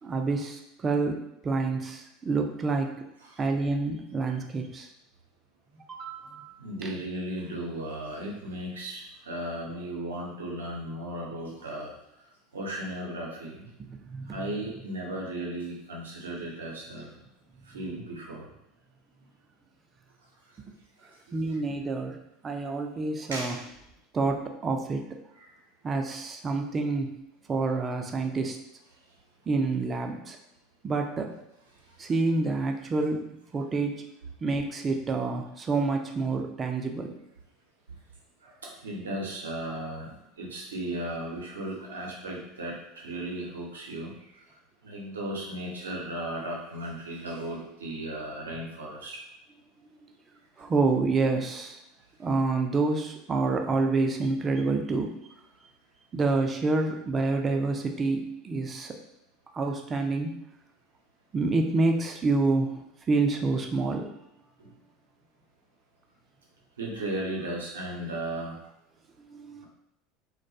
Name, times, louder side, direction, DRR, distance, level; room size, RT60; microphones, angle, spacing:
voice 1, 0.0-3.0 3.4-4.9 5.7-6.5 6.8-6.9 13.8-14.4 21.3-23.6 24.1-25.1 25.8-27.2 27.5-28.6 29.5-30.4 30.8-31.3 32.0-33.3 33.5-34.0 34.4-37.1 50.0-50.1 50.6-51.8 52.2-55.3 56.1-59.0 59.5-60.4 61.3-64.1 69.3-69.7, right 3 dB, 30° right, 3 dB, 0.4 m, -28 dB
voice 2, 6.6-11.9 12.5-13.7 14.3-17.2 17.7-18.5 23.3-23.6 25.4-25.5 38.4-38.5 38.8-44.1 44.8-49.2 64.6-64.7 66.8-68.6, right 1 dB, 85° right, -2 dB, 0.6 m, -36 dB
2.2 x 2.1 x 2.6 m, 0.83 s
hypercardioid pair, 80°, 0 cm